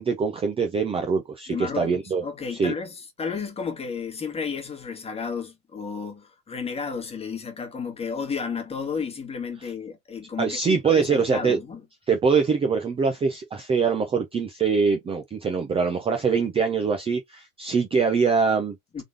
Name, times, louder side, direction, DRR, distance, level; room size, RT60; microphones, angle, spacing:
voice 1, 0.0-2.2 2.5-2.7 10.4-11.6 12.1-18.8, right 5 dB, 15° right, 0.7 m, -23 dB
voice 2, 1.5-11.8 18.9-19.0, left 5 dB, 15° left, 1.5 m, -32 dB
4.0 x 3.3 x 3.3 m
supercardioid pair, 135°, 39 cm